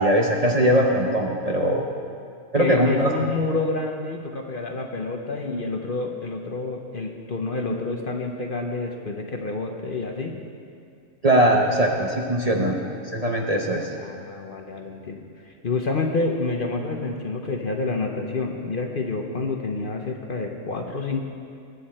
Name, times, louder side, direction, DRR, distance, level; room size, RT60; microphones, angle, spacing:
voice 1, 0.0-1.9 2.5-3.2 11.2-13.9, right 1 dB, 35° right, 0 dB, 0.8 m, -21 dB
voice 2, 2.6-10.3 14.0-21.2, left 3 dB, 45° left, 3 dB, 1.0 m, -28 dB
21.0 x 8.5 x 4.3 m, 2.4 s
omnidirectional pair, 1.4 m